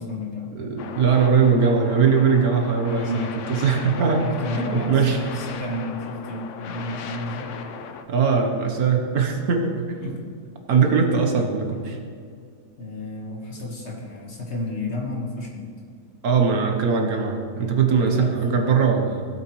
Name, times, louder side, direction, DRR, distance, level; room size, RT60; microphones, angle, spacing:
voice 1, 0.0-0.5 2.8-3.3 3.8-7.5 10.0-10.2 12.8-15.7 18.0-18.3, left 2 dB, 45° left, -1 dB, 1.7 m, -31 dB
voice 2, 0.5-4.2 4.5-5.2 8.1-10.1 10.7-12.0 16.2-19.3, right 5 dB, 65° right, 4 dB, 1.4 m, -21 dB
sound 1, 0.8-8.0, left 6 dB, 65° left, 0.8 m, -37 dB
16.5 x 7.8 x 3.1 m, 2.2 s
omnidirectional pair, 1.8 m